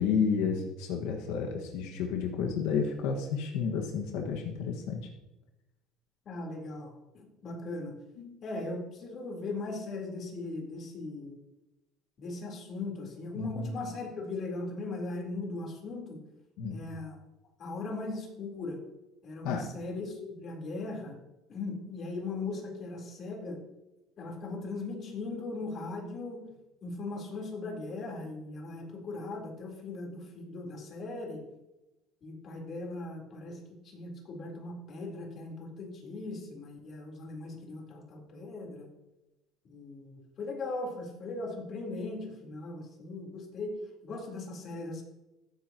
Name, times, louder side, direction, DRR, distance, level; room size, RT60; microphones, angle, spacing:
voice 1, 0.0-5.1 8.2-8.4 13.3-13.7 16.6-16.8 19.4-19.7, left 6 dB, 85° left, 0 dB, 1.8 m, -31 dB
voice 2, 6.3-8.0 8.4-11.4 12.2-16.2 16.7-17.2 17.6-18.8 19.2-21.2 21.5-23.6 24.2-26.4 26.8-31.4 32.2-33.6 33.8-38.9 39.6-43.8 44.0-45.0, left 3 dB, 40° left, 0 dB, 4.0 m, -39 dB
15.5 x 14.0 x 3.0 m, 1.0 s
cardioid pair, 150°, 0 cm